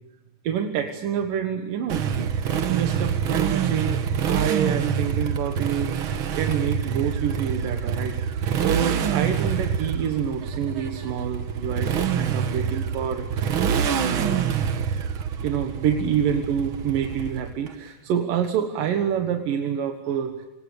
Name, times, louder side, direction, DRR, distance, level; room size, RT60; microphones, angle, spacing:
voice 1, 0.4-13.5 13.9-14.7 15.4-20.5, right 8 dB, 90° right, 5 dB, 3.2 m, -27 dB
Motorcycle, 1.9-17.7, right 7 dB, 55° right, 1.5 m, -26 dB
29.0 x 26.5 x 6.9 m, 1.1 s
omnidirectional pair, 3.8 m